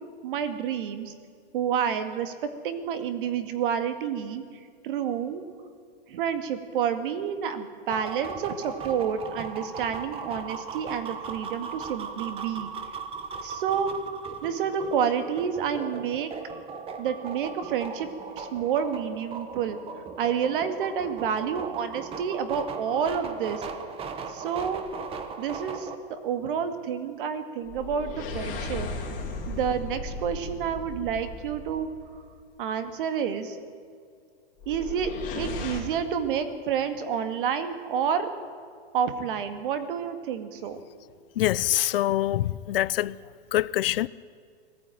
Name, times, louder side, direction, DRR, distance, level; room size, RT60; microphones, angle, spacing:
voice 1, 0.2-1.1 1.5-2.3 2.6-4.4 4.8-5.4 6.1-12.7 13.4-14.0 14.4-16.3 17.0-18.1 18.4-19.8 20.2-23.6 24.3-24.8 25.4-28.9 29.5-31.9 32.6-33.6 34.7-38.3 38.9-40.8, right 7 dB, 60° right, 2.2 m, -29 dB
sound 1, 7.9-26.0, right 5 dB, 20° right, 1.1 m, -38 dB
sound 2, 24.8-25.2 27.7-32.2 34.6-35.8, left 3 dB, 25° left, 3.9 m, -36 dB
voice 2, 41.4-43.2 43.5-44.1, left 14 dB, 70° left, 0.7 m, -25 dB
20.5 x 15.0 x 9.3 m
supercardioid pair, 150°, 30 cm